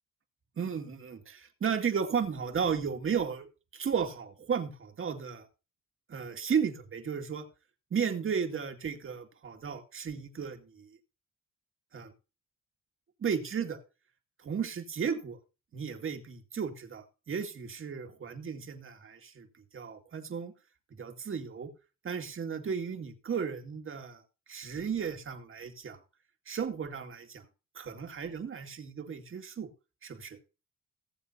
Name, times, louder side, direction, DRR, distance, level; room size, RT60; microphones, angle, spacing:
voice 1, 0.6-3.5 3.7-5.5 6.1-7.5 7.9-11.0 11.9-12.1 13.2-13.8 14.4-15.4 15.7-19.5 19.7-20.5 20.9-21.7 22.0-24.2 24.5-26.0 26.5-27.4 27.8-29.7 30.0-30.4, right 6 dB, 45° right, 6 dB, 2.1 m, -34 dB
19.0 x 7.4 x 2.8 m, 0.32 s
cardioid pair, 90°, 30 cm